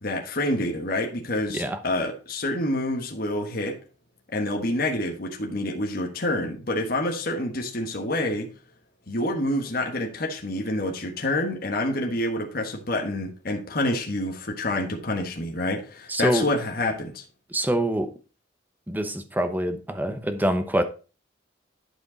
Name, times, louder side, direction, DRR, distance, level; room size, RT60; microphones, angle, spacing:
voice 1, 0.0-3.8 4.3-8.5 9.1-17.2, left 1 dB, 50° left, 1.4 m, -27 dB
voice 2, 16.1-16.5 17.5-18.1 18.9-20.8, right 1 dB, 10° right, 0.8 m, -25 dB
11.5 x 5.0 x 3.9 m
head